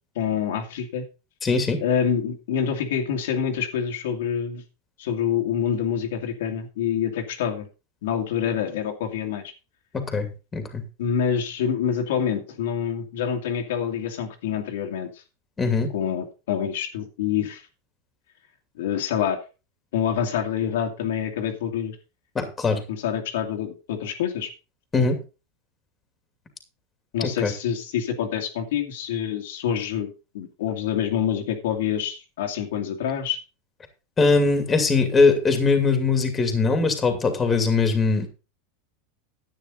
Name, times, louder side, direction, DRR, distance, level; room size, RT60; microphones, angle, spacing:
voice 1, 0.2-1.0 1.8-4.6 5.0-7.7 8.0-9.4 11.0-15.2 15.9-17.6 18.8-19.4 19.9-22.0 22.9-24.5 27.1-33.4, left 8 dB, 80° left, 3 dB, 2.3 m, -26 dB
voice 2, 1.4-1.8 9.9-10.8 15.6-15.9 22.3-22.8 24.9-25.2 27.2-27.5 34.2-38.3, left 4 dB, 15° left, 6 dB, 2.5 m, -21 dB
10.5 x 9.1 x 3.9 m, 0.30 s
supercardioid pair, 140°, 0 cm